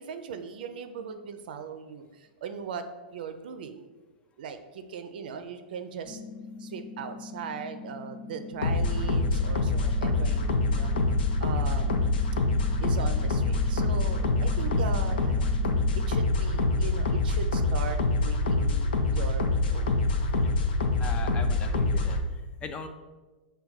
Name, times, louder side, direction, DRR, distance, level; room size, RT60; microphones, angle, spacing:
voice 1, 0.0-2.9 3.1-3.9 4.4-6.2 6.6-10.9 11.4-12.0 12.8-15.4 16.0-19.9 21.3-21.4, right 6 dB, 70° right, 8 dB, 0.4 m, -39 dB
sound 1, 6.0-16.0, left 4 dB, 60° left, 1.2 m, -43 dB
sound 2, 8.6-22.2, left 2 dB, 80° left, 0.5 m, -25 dB
voice 2, 21.0-22.2 22.6-22.9, left 5 dB, 20° left, 7 dB, 0.3 m, -38 dB
4.5 x 2.2 x 4.0 m, 1.2 s
hypercardioid pair, 130°, 5 cm